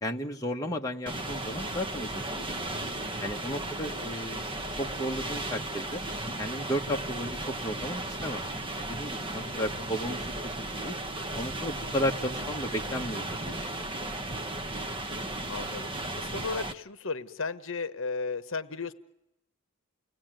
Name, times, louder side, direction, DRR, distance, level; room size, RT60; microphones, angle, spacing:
voice 1, 0.0-2.5 3.2-4.4 4.8-6.0 6.4-8.4 8.8-11.0 11.3-14.1, equal, 15° left, 1 dB, 1.4 m, -34 dB
sound 1, 1.1-16.7, right 1 dB, 20° right, 1.0 m, -35 dB
voice 2, 15.5-18.9, left 4 dB, 60° left, 11 dB, 1.1 m, -35 dB
30.0 x 19.0 x 9.2 m, 0.88 s
head